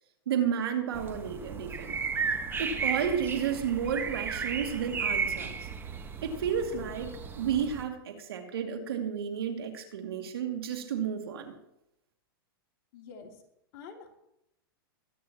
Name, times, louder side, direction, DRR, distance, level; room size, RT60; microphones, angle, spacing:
voice 1, 0.3-1.9 2.6-5.6 6.2-11.5, right 7 dB, 75° right, 4 dB, 2.6 m, -32 dB
sound 1, 0.9-7.8, right 5 dB, 15° right, 1.4 m, -34 dB
voice 2, 12.9-13.4 13.7-14.2, left 5 dB, 50° left, 0 dB, 2.8 m, -47 dB
23.0 x 9.5 x 3.0 m, 0.83 s
hypercardioid pair, 125°, 13 cm